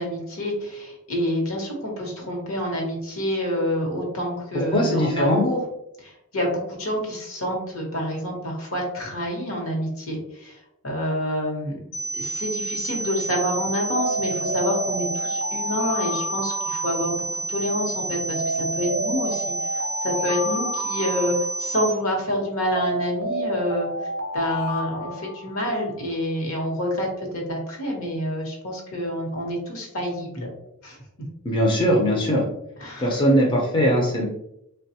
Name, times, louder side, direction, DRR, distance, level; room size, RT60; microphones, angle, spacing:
voice 1, 0.0-5.6 6.0-10.5 10.8-11.8 12.1-17.1 17.5-23.9 24.3-27.1 27.3-30.5 30.8-31.0 32.8-33.2, equal, 70° left, 0 dB, 1.0 m, -27 dB
voice 2, 4.5-5.4 31.4-32.4 33.0-34.2, equal, 20° left, -2 dB, 0.5 m, -20 dB
sound 1, 11.9-21.9, right 3 dB, 45° left, 0.8 m, -30 dB
Alarm, 13.9-17.6 18.3-22.0 22.7-25.9, equal, 50° right, 0.5 m, -30 dB
3.4 x 2.2 x 2.8 m, 0.80 s
head